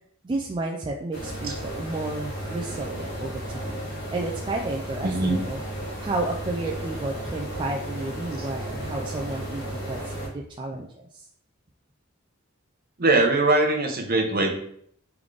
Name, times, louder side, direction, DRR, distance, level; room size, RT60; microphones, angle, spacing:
voice 1, 0.2-3.9 4.1-11.3, right 2 dB, 25° right, -1 dB, 0.3 m, -32 dB
sound 1, 1.1-10.3, right 1 dB, 60° left, 1.2 m, -34 dB
voice 2, 5.0-5.4 13.0-14.5, right 2 dB, 45° right, 2 dB, 0.8 m, -21 dB
3.5 x 3.3 x 3.7 m, 0.65 s
head